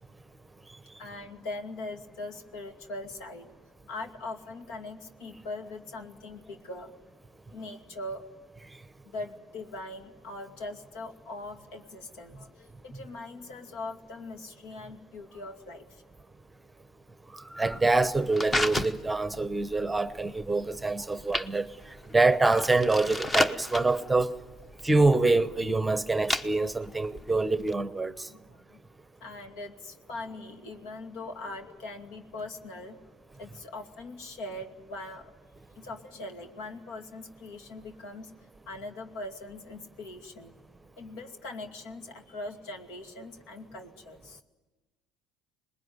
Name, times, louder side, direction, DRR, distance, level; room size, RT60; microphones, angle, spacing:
voice 1, 1.0-3.5 3.9-7.1 7.5-8.3 9.0-16.0 28.3-28.8 29.2-33.0 33.4-35.2 35.8-38.3 38.7-40.5 41.0-44.4, left 2 dB, 80° left, 2.5 m, -41 dB
voice 2, 17.5-21.7 22.1-24.3 24.8-28.3, right 3 dB, 10° right, 0.9 m, -25 dB
sound 1, 17.7-27.7, left 1 dB, 20° left, 1.1 m, -34 dB
26.5 x 20.5 x 9.5 m
supercardioid pair, 105°, 0 cm